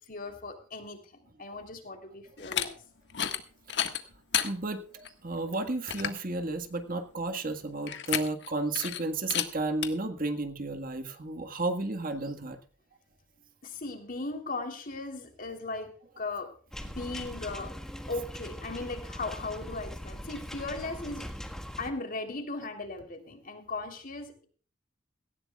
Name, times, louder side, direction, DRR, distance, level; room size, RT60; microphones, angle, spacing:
voice 1, 0.1-2.8 13.6-16.5 16.8-17.7 18.1-21.3 21.8-24.5, left 3 dB, 45° left, 5 dB, 3.4 m, -38 dB
sound 1, 2.4-2.7 3.1-3.4 3.7-4.5 5.0-5.1 5.5-5.6 5.9-6.2 7.9-8.5 8.7-9.0 9.3-9.5 9.8-9.9, left 9 dB, 65° left, 1.6 m, -30 dB
voice 2, 4.4-12.6, right 2 dB, 45° right, 7 dB, 1.7 m, -33 dB
sound 2, 16.7-21.9, equal, 5° left, 1.6 m, -41 dB
18.0 x 17.0 x 2.4 m, 0.40 s
head